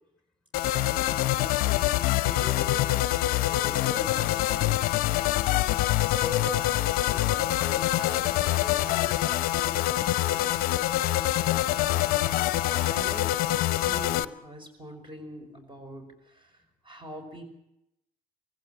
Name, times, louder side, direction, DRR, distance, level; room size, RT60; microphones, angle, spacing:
sound 1, 0.5-14.2, left 15 dB, 50° left, 0.7 m, -25 dB
voice 1, 0.6-2.9 11.5-12.4 12.7-13.4 13.8-16.6 16.8-17.4, right 1 dB, 25° right, 6 dB, 5.1 m, -44 dB
voice 2, 3.3-4.7 6.0-10.5, left 3 dB, 5° left, 4 dB, 5.0 m, -42 dB
24.5 x 16.0 x 7.3 m, 0.84 s
figure-of-eight pair, 55°, 19 cm